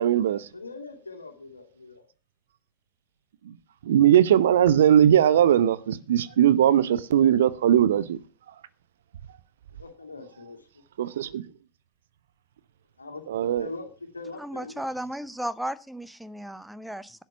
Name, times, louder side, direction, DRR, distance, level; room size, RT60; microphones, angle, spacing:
voice 1, 0.0-0.5 3.9-8.2 11.0-11.4 13.3-13.7, right 10 dB, 60° right, 0.9 m, -20 dB
voice 2, 0.5-2.1 9.8-10.6 13.0-13.2 13.6-14.8, left 3 dB, 80° left, 2.5 m, -41 dB
voice 3, 14.4-17.2, right 1 dB, 5° right, 0.7 m, -35 dB
12.0 x 9.1 x 5.8 m
figure-of-eight pair, 90°, 0 cm